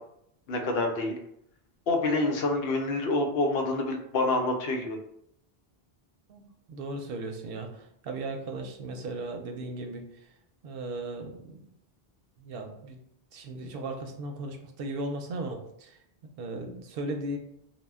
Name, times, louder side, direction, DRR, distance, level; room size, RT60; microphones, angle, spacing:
voice 1, 0.5-1.2 1.9-5.0, left 2 dB, 75° left, 3 dB, 0.8 m, -27 dB
voice 2, 6.7-10.0 10.6-11.6 12.4-13.0 13.3-16.0 16.4-17.4, right 2 dB, 70° right, 4 dB, 0.7 m, -36 dB
2.1 x 2.1 x 3.4 m, 0.72 s
omnidirectional pair, 1.1 m